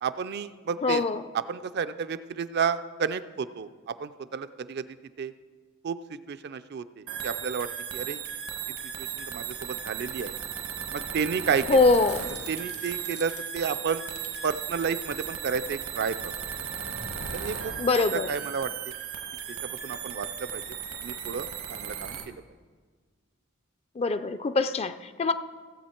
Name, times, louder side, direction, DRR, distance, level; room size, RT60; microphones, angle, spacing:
voice 1, 0.0-1.0 1.3-5.3 5.8-8.2 9.0-10.4 10.9-11.8 12.5-14.0 14.4-16.3 17.3-18.9 19.5-20.6 21.0-22.4, right 6 dB, 50° right, 0.4 m, -32 dB
voice 2, 0.8-1.2 11.7-12.3 17.8-18.3 24.0-25.3, left 3 dB, 30° left, 0.4 m, -23 dB
sound 1, 7.1-22.3, right 7 dB, 80° right, 1.2 m, -36 dB
sound 2, 11.9-14.5 14.9-15.7 16.1-16.5 16.8-18.4, left 3 dB, 80° left, 1.8 m, -48 dB
16.5 x 7.7 x 4.4 m
head